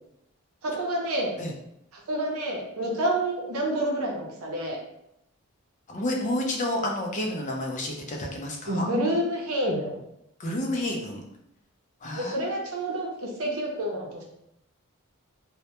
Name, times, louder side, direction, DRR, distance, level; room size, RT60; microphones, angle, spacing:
voice 1, 0.6-1.3 1.9-4.8 8.7-10.0 12.2-14.2, right 1 dB, 90° right, 0 dB, 0.6 m, -28 dB
voice 2, 5.9-8.9 10.4-11.2 12.0-12.4, left 1 dB, 35° left, 0 dB, 0.4 m, -30 dB
2.1 x 2.1 x 2.8 m, 0.79 s
head